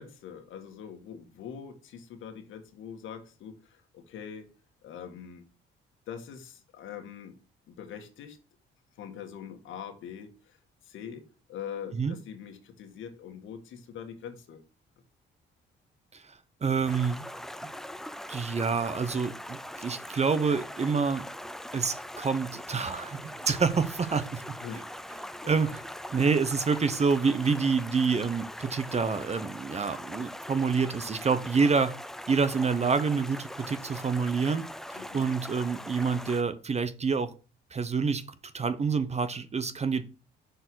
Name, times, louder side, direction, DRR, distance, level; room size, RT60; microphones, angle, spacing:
voice 1, 0.0-4.5 4.8-5.4 6.1-7.4 7.7-8.4 9.0-10.6 10.8-11.2 11.5-14.6 24.6-25.1 25.4-25.7 34.9-35.2, left 8 dB, 80° left, 1.7 m, -43 dB
voice 2, 16.1-17.2 18.3-21.2 21.7-24.4 25.5-25.8 26.1-31.9 32.3-34.6 34.9-37.3 37.7-38.2 38.5-40.0, right 5 dB, 35° right, 0.8 m, -27 dB
Stream, 16.9-36.4, left 1 dB, ahead, 0.5 m, -41 dB
6.5 x 4.5 x 6.2 m
cardioid pair, 90°, 20 cm